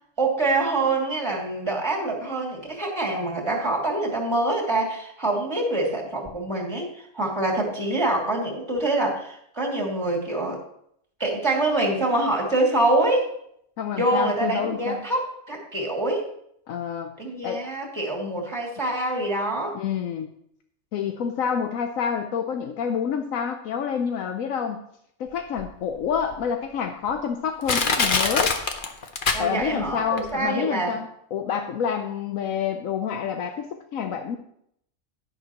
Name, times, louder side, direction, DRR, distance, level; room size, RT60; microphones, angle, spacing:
voice 1, 0.2-10.6 11.2-13.3 13.9-16.3 17.2-19.8 29.3-30.9, right 2 dB, 20° right, -2 dB, 2.5 m, -25 dB
voice 2, 13.8-15.0 16.7-17.1 17.4-17.6 19.7-20.3 20.9-24.8 25.2-28.5 29.4-34.4, left 7 dB, 80° left, 5 dB, 1.1 m, -28 dB
Crushing, 25.6-25.7 26.3-26.4 27.1-27.2 27.7-29.9 30.2-30.3, left 4 dB, 45° left, 1.0 m, -23 dB
11.0 x 11.0 x 3.0 m, 0.71 s
omnidirectional pair, 1.4 m